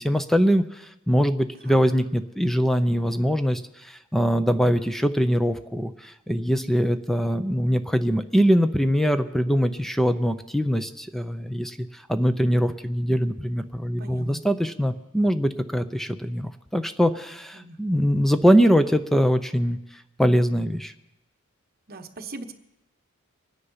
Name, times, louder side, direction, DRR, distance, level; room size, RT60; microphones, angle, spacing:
voice 1, 0.0-20.9, equal, ahead, 10 dB, 0.6 m, -23 dB
voice 2, 14.0-14.4 17.5-17.8 21.9-22.5, right 2 dB, 45° right, 6 dB, 1.2 m, -39 dB
24.5 x 9.9 x 5.6 m, 0.92 s
head